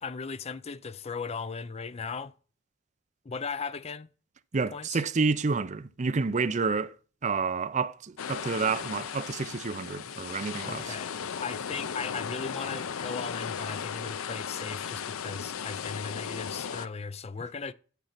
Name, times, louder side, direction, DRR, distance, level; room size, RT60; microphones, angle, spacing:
voice 1, 0.0-2.3 3.3-4.1 4.7-5.0 10.6-11.1 11.4-17.7, left 5 dB, 30° left, 0.5 m, -37 dB
voice 2, 4.5-6.9 7.2-10.9, right 4 dB, 35° right, 0.5 m, -29 dB
sound 1, 8.2-16.9, left 7 dB, 90° left, 0.5 m, -36 dB
9.1 x 6.9 x 5.8 m
head